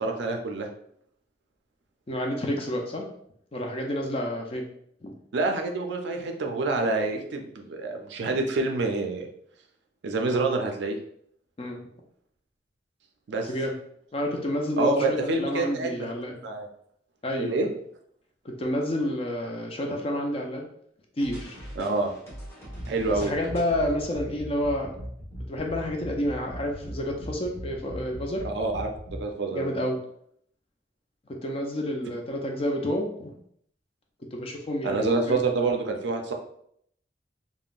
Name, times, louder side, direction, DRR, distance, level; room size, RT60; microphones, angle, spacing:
voice 1, 0.0-0.7 5.3-9.3 10.0-11.0 13.3-13.5 14.8-16.7 17.4-17.7 21.8-22.1 22.9-23.4 28.4-29.7 34.8-36.3, right 3 dB, 70° right, 3 dB, 0.4 m, -27 dB
voice 2, 2.1-3.0 3.5-4.6 5.0-5.1 11.6-11.8 13.4-13.7 14.1-16.4 17.2-17.6 18.4-20.7 21.2-21.6 23.1-24.9 25.5-28.4 29.5-30.0 31.4-33.3 34.3-35.0 35.3-35.4, left 1 dB, 30° left, 1 dB, 0.4 m, -29 dB
sound 1, 21.2-29.2, equal, 15° left, 1.0 m, -39 dB
3.5 x 2.1 x 2.4 m, 0.68 s
head